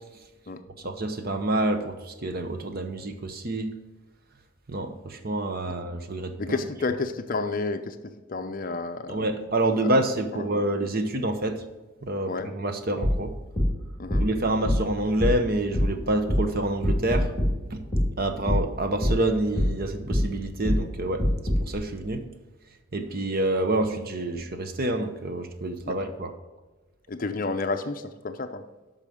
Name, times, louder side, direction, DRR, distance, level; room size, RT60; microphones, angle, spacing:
voice 1, 0.8-3.7 4.7-6.6 9.1-11.6 12.0-13.3 14.2-17.3 17.7-17.8 18.2-21.3 21.7-22.2 22.9-26.3, right 1 dB, 45° right, 8 dB, 0.8 m, -27 dB
voice 2, 6.4-9.2 10.0-10.1 10.3-10.4 12.3-12.5 14.0-14.2 25.9-26.1 27.1-28.6, left 3 dB, 40° left, 8 dB, 0.5 m, -31 dB
sound 1, 13.0-21.7, equal, 10° left, 2.3 m, -26 dB
8.8 x 5.7 x 6.3 m, 1.2 s
head